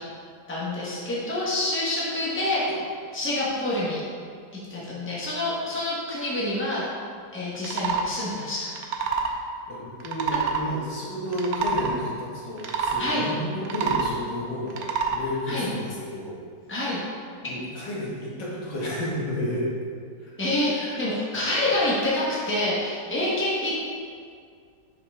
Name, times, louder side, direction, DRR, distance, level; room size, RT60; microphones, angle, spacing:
voice 1, 0.5-2.7 3.1-4.0 4.7-6.9 7.3-8.7 13.0-13.2 15.5-15.7 16.7-17.0 20.4-23.7, left 1 dB, 10° left, -7 dB, 1.1 m, -27 dB
sound 1, 7.6-8.1 8.7-9.4 10.0-10.6 11.3-11.9 12.6-13.0 13.6-14.2 14.7-15.2, right 5 dB, 70° right, 1.0 m, -27 dB
voice 2, 9.7-16.4 17.4-19.7 20.2-20.3 20.7-21.0, left 1 dB, 90° left, -5 dB, 2.0 m, -31 dB
5.6 x 5.1 x 3.6 m, 2.2 s
omnidirectional pair, 1.9 m